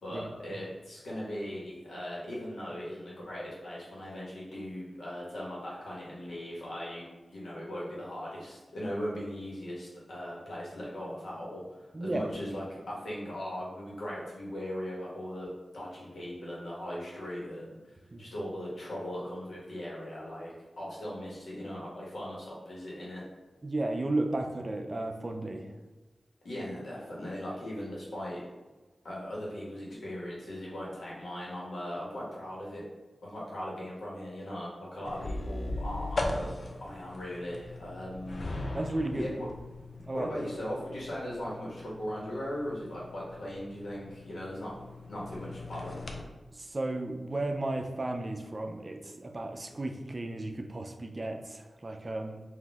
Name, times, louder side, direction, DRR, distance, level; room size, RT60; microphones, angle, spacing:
voice 1, 0.0-7.0 7.3-17.7 18.2-23.2 26.4-28.4 29.0-32.8 33.2-36.5 36.8-38.5 39.1-39.5 40.1-44.7 45.1-46.0, equal, 85° left, -5 dB, 1.3 m, -39 dB
voice 2, 11.9-12.3 18.1-18.3 23.6-25.7 38.7-39.3 40.0-40.3 46.5-52.4, right 2 dB, 40° right, 5 dB, 0.4 m, -34 dB
sound 1, 35.0-46.2, left 2 dB, 60° left, 0.5 m, -39 dB
4.1 x 2.6 x 3.5 m, 1.2 s
cardioid pair, 55°, 0 cm